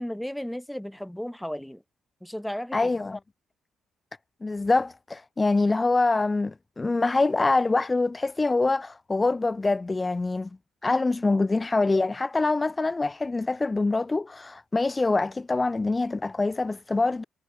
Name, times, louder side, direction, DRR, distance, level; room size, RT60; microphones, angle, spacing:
voice 1, 0.0-1.8 2.2-2.9 11.3-11.4, equal, 5° left, 2.9 m, -34 dB
voice 2, 2.7-3.2 4.4-10.5 10.8-17.2, left 3 dB, 20° left, 0.6 m, -25 dB
cardioid pair, 90°, 0 cm